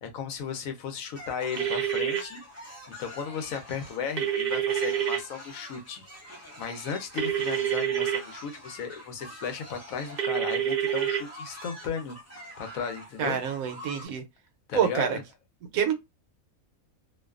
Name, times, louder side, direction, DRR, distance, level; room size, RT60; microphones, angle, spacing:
voice 1, 0.0-2.7 3.0-12.2 12.6-13.4 14.7-15.2, left 6 dB, 75° left, 1.0 m, -35 dB
sound 1, 1.1-14.1, left 1 dB, 20° left, 0.4 m, -45 dB
sound 2, 1.5-2.2 4.2-5.2 7.2-8.2 10.2-11.2, right 10 dB, 55° right, 0.7 m, -27 dB
voice 2, 13.2-14.2 14.7-15.2 15.7-15.9, right 8 dB, 75° right, 1.0 m, -26 dB
2.5 x 2.2 x 2.3 m
omnidirectional pair, 1.5 m